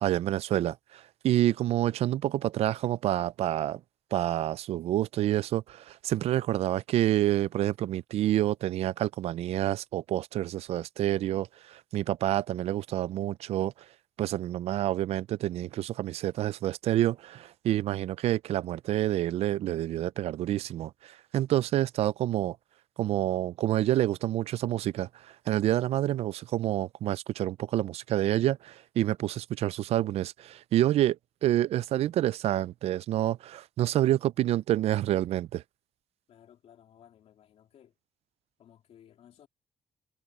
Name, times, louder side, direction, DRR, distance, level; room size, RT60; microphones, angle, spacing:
voice 1, 0.0-3.8 4.1-13.7 14.2-22.6 23.0-25.1 25.5-31.2 31.4-35.6, right 13 dB, 90° right, 0.4 m, -28 dB
voice 2, 36.3-38.0 38.6-39.5, left 10 dB, 85° left, 3.5 m, -57 dB
cardioid pair, 115°, 10 cm